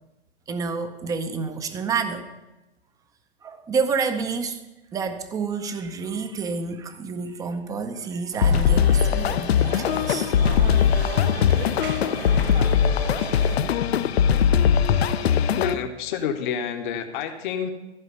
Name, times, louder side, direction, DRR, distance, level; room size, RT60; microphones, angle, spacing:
voice 1, 0.5-2.3 3.4-4.6 4.9-10.3 12.2-12.8 13.2-13.7 14.3-14.5 14.9-15.3, right 5 dB, 10° right, 9 dB, 0.5 m, -29 dB
sound 1, 8.3-13.6, right 9 dB, 55° right, 0.9 m, -37 dB
sound 2, 8.4-15.7, left 8 dB, 70° left, 0.7 m, -20 dB
voice 2, 15.5-17.7, left 7 dB, 50° left, 5 dB, 1.0 m, -28 dB
14.0 x 4.9 x 5.6 m, 1.0 s
hypercardioid pair, 130°, 33 cm